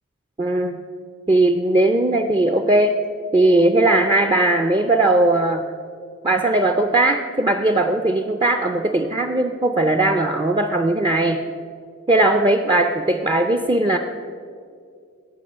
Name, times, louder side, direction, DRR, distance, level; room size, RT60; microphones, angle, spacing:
voice 1, 0.4-0.8 1.3-3.0 3.3-5.6 6.2-11.4 12.1-14.0, right 2 dB, 20° right, 5 dB, 0.4 m, -18 dB
17.0 x 6.7 x 5.4 m, 2.3 s
head